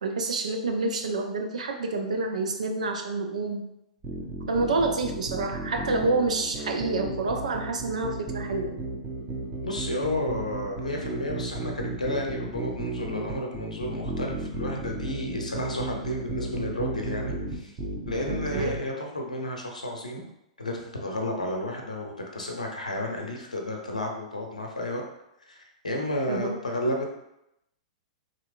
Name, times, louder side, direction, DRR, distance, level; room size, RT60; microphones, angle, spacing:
voice 1, 0.0-3.7 4.5-8.8 18.5-18.7 26.3-26.6, right 3 dB, 75° right, 4 dB, 0.5 m, -28 dB
sound 1, 4.0-18.8, right 2 dB, 25° right, 0.9 m, -34 dB
voice 2, 9.6-17.7 18.1-20.2 20.6-25.0 25.5-27.1, left 1 dB, 85° left, 1 dB, 0.7 m, -32 dB
3.2 x 2.7 x 2.4 m, 0.83 s
figure-of-eight pair, 110°, 4 cm